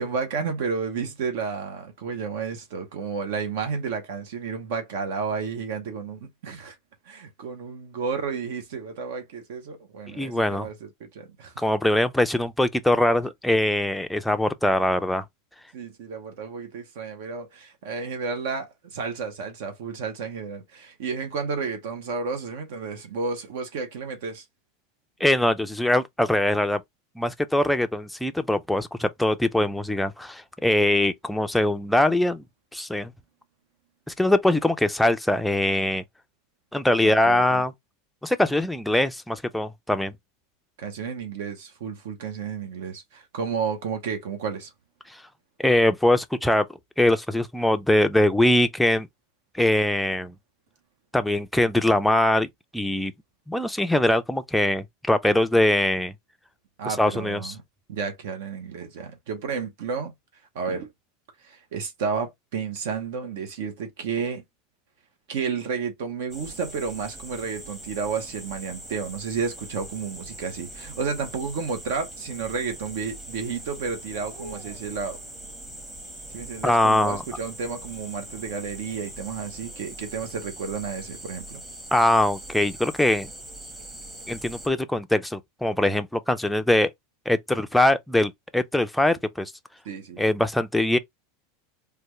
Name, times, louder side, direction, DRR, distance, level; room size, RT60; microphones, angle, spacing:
voice 1, 0.0-6.8 7.0-11.6 15.7-24.4 37.0-37.6 40.8-44.7 56.8-57.6 57.9-60.1 60.5-60.9 61.4-64.4 65.3-75.2 76.3-81.6 89.8-90.2, right 5 dB, 75° right, 0.9 m, -31 dB
voice 2, 10.1-10.7 11.6-15.2 25.2-26.8 27.2-32.4 32.7-33.1 34.1-36.0 36.7-37.7 38.2-40.1 45.6-46.7 47.0-49.1 49.5-50.3 51.1-52.5 52.7-53.1 53.5-56.1 56.8-57.5 76.6-77.2 81.9-83.3 84.3-86.9 87.3-89.5 90.2-91.0, left 1 dB, 5° left, 0.4 m, -22 dB
sound 1, 66.3-84.7, right 1 dB, 15° right, 1.0 m, -41 dB
3.3 x 2.3 x 3.0 m
supercardioid pair, 140°, 0 cm